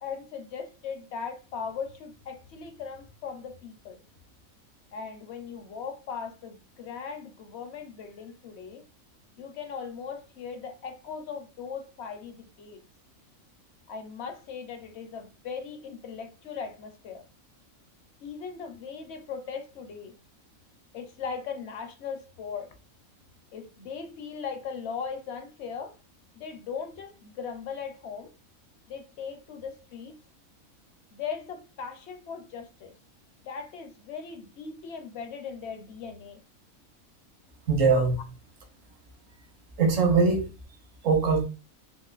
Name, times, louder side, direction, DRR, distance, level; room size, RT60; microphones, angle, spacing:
voice 1, 0.0-4.0 4.9-8.8 9.4-12.8 13.9-17.2 18.2-20.1 20.9-22.7 23.5-25.9 26.3-28.3 28.9-30.1 31.1-32.9 33.5-36.4, left 6 dB, 65° left, 0.7 m, -38 dB
voice 2, 37.7-38.2 39.8-40.5 41.0-41.4, right 4 dB, 65° right, 1.2 m, -21 dB
3.6 x 2.7 x 2.3 m
omnidirectional pair, 1.5 m